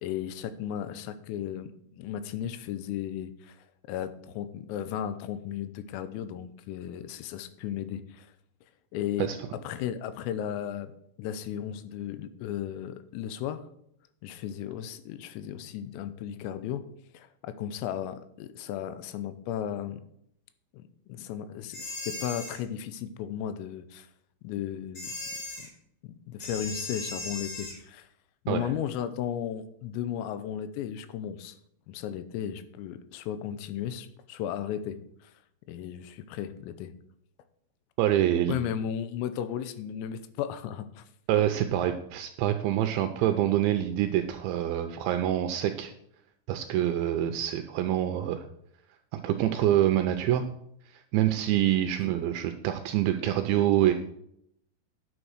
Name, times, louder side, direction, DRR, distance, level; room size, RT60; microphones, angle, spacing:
voice 1, 0.0-3.6 3.9-8.3 8.9-9.3 9.6-10.9 11.2-13.6 14.2-16.8 17.1-20.0 20.7-24.1 24.4-25.1 25.6-25.7 26.0-28.1 28.5-31.6 31.9-35.3 35.7-36.9 38.5-41.0, left 10 dB, 90° left, 12 dB, 3.5 m, -35 dB
sound 1, 21.7-22.6 24.9-25.7 26.4-27.8, left 2 dB, 40° left, 2.8 m, -37 dB
voice 2, 38.0-38.5 41.3-45.9 46.5-48.4 49.1-50.5 50.9-53.9, right 12 dB, 90° right, 7 dB, 2.7 m, -26 dB
10.0 x 7.1 x 6.4 m, 0.74 s
omnidirectional pair, 5.9 m